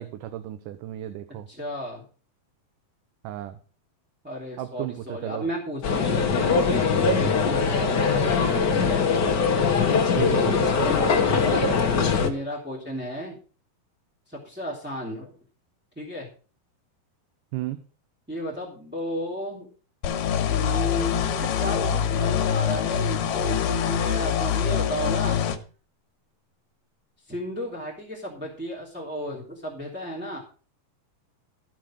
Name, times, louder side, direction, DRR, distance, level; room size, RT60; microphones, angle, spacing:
voice 1, 0.0-1.5 3.2-3.6 4.6-5.5 10.1-10.8 17.5-17.8, right 13 dB, 75° right, 10 dB, 2.3 m, -33 dB
voice 2, 1.5-2.0 4.2-9.0 10.8-13.4 14.3-15.3 16.0-16.3 18.3-19.7 20.5-25.4 27.3-30.4, equal, 5° right, -5 dB, 2.6 m, -33 dB
sound 1, 5.8-12.3, left 5 dB, 50° left, 1.3 m, -22 dB
sound 2, 20.0-25.6, left 8 dB, 80° left, 2.8 m, -24 dB
14.0 x 6.2 x 6.4 m, 0.38 s
omnidirectional pair, 3.9 m